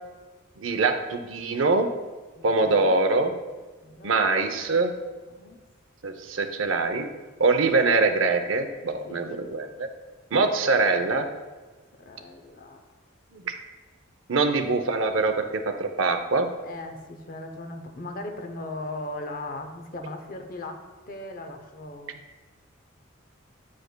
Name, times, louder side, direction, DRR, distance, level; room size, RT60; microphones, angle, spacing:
voice 1, 0.6-1.9 2.4-3.3 4.0-4.9 6.0-7.1 7.4-9.9 10.3-11.3 13.3-13.6 14.3-16.5, right 3 dB, 75° right, 7 dB, 0.6 m, -23 dB
voice 2, 2.4-2.9 3.8-4.2 5.3-5.6 9.1-9.4 12.0-12.8 16.6-22.2, left 2 dB, 45° left, 5 dB, 0.6 m, -38 dB
9.2 x 5.0 x 2.2 m, 1.3 s
head